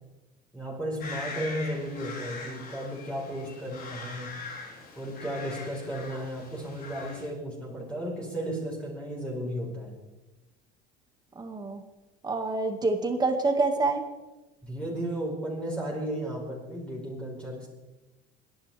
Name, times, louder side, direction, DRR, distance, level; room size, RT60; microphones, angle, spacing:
voice 1, 0.5-4.4 4.9-9.9 14.6-17.7, equal, 5° left, -4 dB, 4.5 m, -34 dB
sound 1, 1.0-7.3, left 3 dB, 45° left, 4.4 m, -42 dB
voice 2, 11.4-11.8 12.2-14.0, right 3 dB, 20° right, 5 dB, 2.1 m, -26 dB
28.5 x 11.0 x 3.6 m, 1.1 s
supercardioid pair, 120°, 21 cm